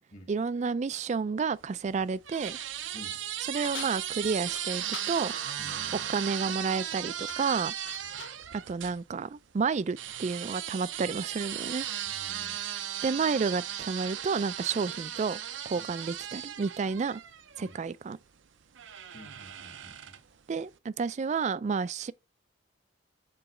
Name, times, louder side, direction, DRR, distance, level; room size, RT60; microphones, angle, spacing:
voice 1, 0.3-2.6 3.5-5.3 6.1-7.7 8.7-11.9 13.0-15.4 15.7-17.2 17.6-18.2 20.5-22.1, right 5 dB, 40° right, 0.3 m, -30 dB
sound 1, 1.6-9.0 10.0-17.9 18.8-20.4, right 10 dB, 80° right, 0.6 m, -37 dB
sound 2, 3.6-5.2 6.6-7.0 7.3-8.4, left 8 dB, 80° left, 0.7 m, -45 dB
voice 2, 5.6-6.0 12.1-12.6 15.7-15.9 17.6-17.8 19.1-20.1, equal, 40° left, 1.7 m, -50 dB
6.9 x 4.0 x 4.9 m
head